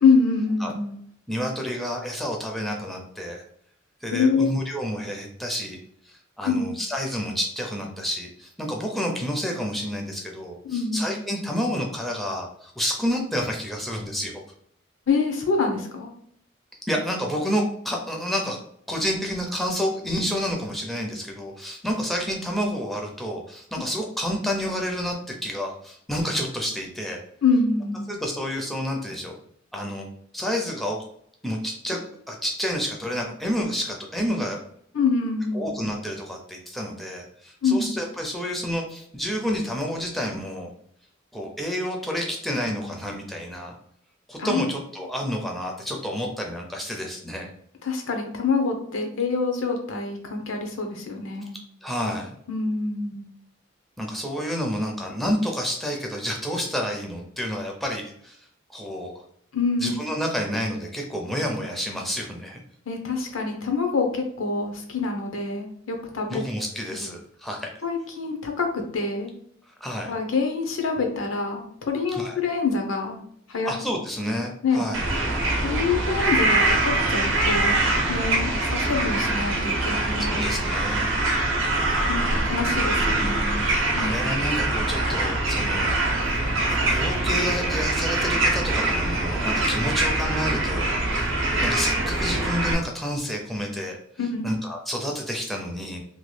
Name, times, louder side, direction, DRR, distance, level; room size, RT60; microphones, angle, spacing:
voice 1, 0.0-1.0 4.1-4.5 6.4-6.6 10.6-11.2 15.1-16.1 23.8-23.9 27.4-28.1 34.9-35.7 37.6-37.9 44.4-44.7 47.8-51.6 52.5-53.3 59.5-59.9 62.9-66.6 67.0-67.1 67.8-69.3 70.1-73.2 73.5-73.7 74.6-74.9 75.6-80.3 82.1-84.1 94.2-94.5, left 4 dB, 85° left, 3 dB, 0.7 m, -25 dB
voice 2, 1.3-3.4 4.0-5.8 6.0-14.3 16.9-18.6 18.9-27.2 28.1-29.4 29.7-30.1 30.3-31.0 31.4-32.0 32.3-34.6 35.5-40.7 41.3-43.7 44.3-47.5 51.8-52.4 54.0-59.1 59.8-62.6 66.3-67.7 69.7-70.1 72.1-72.4 73.6-75.0 80.3-81.1 83.9-86.0 86.7-91.3 91.6-94.0 94.4-96.0, equal, ahead, 0 dB, 0.4 m, -29 dB
sound 1, 74.9-92.7, right 2 dB, 75° right, 0.6 m, -24 dB
2.9 x 2.2 x 3.1 m, 0.66 s
head